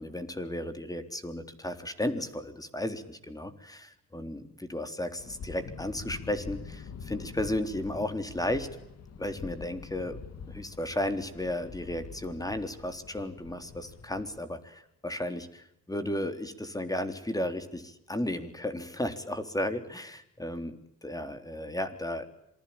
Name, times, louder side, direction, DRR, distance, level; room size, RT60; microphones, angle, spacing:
voice 1, 0.0-8.7 9.2-10.2 10.5-20.7 21.0-22.3, left 1 dB, 10° left, 8 dB, 3.7 m, -34 dB
sound 1, 5.2-14.4, left 5 dB, 55° left, 3.0 m, -45 dB
27.0 x 21.0 x 8.8 m, 0.79 s
cardioid pair, 90°, 30 cm